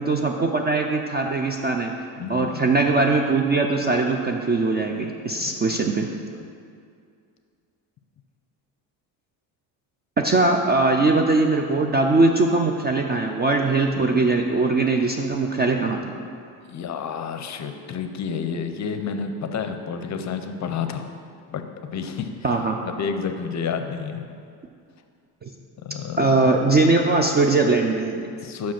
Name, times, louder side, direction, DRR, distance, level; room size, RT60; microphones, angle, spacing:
voice 1, 0.0-1.9 2.3-6.1 10.2-16.2 22.4-22.8 25.4-25.5 26.2-28.3, right 3 dB, 25° right, 3 dB, 0.3 m, -21 dB
voice 2, 2.2-2.6 5.4-5.9 16.7-21.1 21.5-21.6 21.9-22.3 23.0-24.2 25.8-26.6 28.4-28.7, left 6 dB, 35° left, 7 dB, 0.6 m, -30 dB
5.7 x 5.0 x 5.8 m, 2.3 s
supercardioid pair, 90°, 47 cm